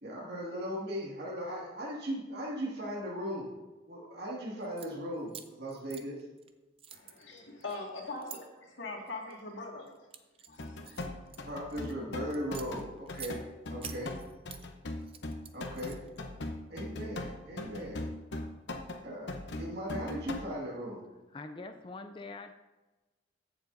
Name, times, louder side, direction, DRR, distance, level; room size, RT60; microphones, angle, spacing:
voice 1, 0.0-3.5 3.9-6.2 7.6-8.3 9.2-9.4 11.5-13.4 13.7-14.1 15.5-16.0 16.7-18.0 19.0-21.0, equal, 55° right, -4 dB, 2.0 m, -38 dB
sound 1, 4.6-4.9 5.3-6.5 6.8-8.4 9.1-9.4 9.9-11.9 12.3-13.4 13.8-14.6 15.0-16.2, right 8 dB, 30° right, 0.5 m, -47 dB
voice 2, 6.9-9.9 10.5-11.0, left 3 dB, 85° left, 0 dB, 2.0 m, -42 dB
sound 2, 10.6-20.5, left 2 dB, 70° left, 0.8 m, -40 dB
voice 3, 21.3-22.5, left 3 dB, 25° left, 6 dB, 0.4 m, -44 dB
14.5 x 7.2 x 2.6 m, 1.1 s
head